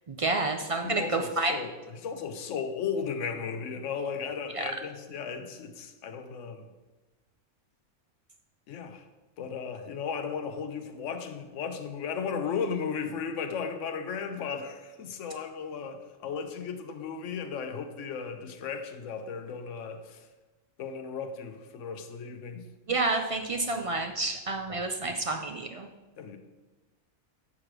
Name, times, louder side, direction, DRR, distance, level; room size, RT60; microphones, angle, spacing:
voice 1, 0.1-1.6 4.5-4.7 22.9-25.9, right 3 dB, 65° right, 4 dB, 0.3 m, -29 dB
voice 2, 0.8-1.7 2.0-6.6 8.7-9.0 9.4-20.2 20.8-22.6 24.7-24.8 26.2-26.4, left 6 dB, 75° left, 7 dB, 1.1 m, -35 dB
7.2 x 4.9 x 6.0 m, 1.2 s
omnidirectional pair, 1.3 m